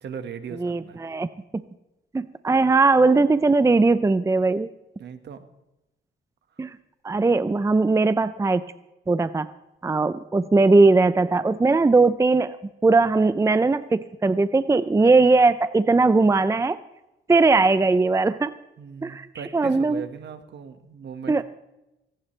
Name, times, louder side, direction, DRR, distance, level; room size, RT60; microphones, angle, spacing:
voice 1, 0.0-1.0 5.0-5.4 18.8-21.4, right 6 dB, 60° right, 8 dB, 1.7 m, -38 dB
voice 2, 0.6-1.3 2.1-4.7 6.6-6.7 7.0-8.6 9.1-9.5 9.8-12.6 12.8-16.8 17.3-18.5 19.0-19.3 19.5-20.0 21.3-21.4, right 3 dB, 15° right, 13 dB, 0.6 m, -19 dB
18.0 x 17.5 x 3.3 m, 0.93 s
cardioid pair, 90°, 20 cm